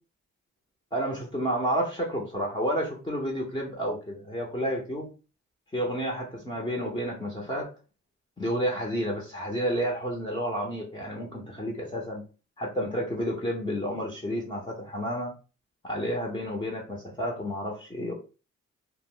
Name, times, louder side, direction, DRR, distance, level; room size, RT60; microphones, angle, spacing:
voice 1, 0.9-5.1 5.7-7.7 8.4-12.2 12.6-15.3 15.8-18.1, equal, 15° left, -1 dB, 0.6 m, -30 dB
2.1 x 2.0 x 3.7 m, 0.34 s
cardioid pair, 80°, 31 cm